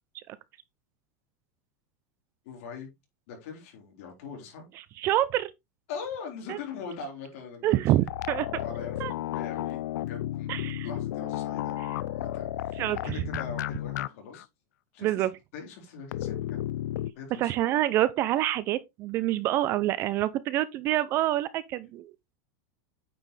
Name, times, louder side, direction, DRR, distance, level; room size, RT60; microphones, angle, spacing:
voice 1, 2.4-2.9 3.3-4.6 5.9-7.8 8.5-14.4 14.9-15.3 15.5-16.6 17.2-17.5, left 5 dB, 55° left, 4.2 m, -41 dB
voice 2, 5.0-5.5 6.5-6.6 7.6-8.6 9.0-9.1 10.5-10.9 12.8-13.2 15.0-15.3 17.3-22.1, right 14 dB, 25° right, 0.4 m, -27 dB
sound 1, 8.1-14.1 14.3-14.4 16.1-17.1, left 13 dB, 75° left, 0.4 m, -33 dB
9.0 x 6.1 x 3.2 m
supercardioid pair, 175°, 9 cm